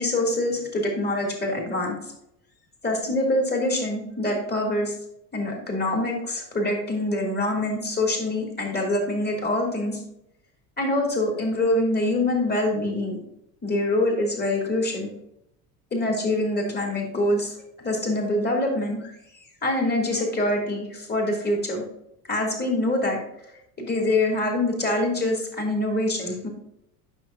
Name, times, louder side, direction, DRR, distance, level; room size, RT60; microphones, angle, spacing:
voice 1, 0.0-1.9 2.8-4.9 5.3-10.0 10.8-13.2 13.6-15.1 15.9-17.5 17.8-19.0 19.6-21.8 22.3-23.2 23.8-26.5, left 1 dB, 20° left, 0 dB, 3.0 m, -25 dB
9.2 x 6.1 x 2.8 m, 0.79 s
figure-of-eight pair, 70°, 48 cm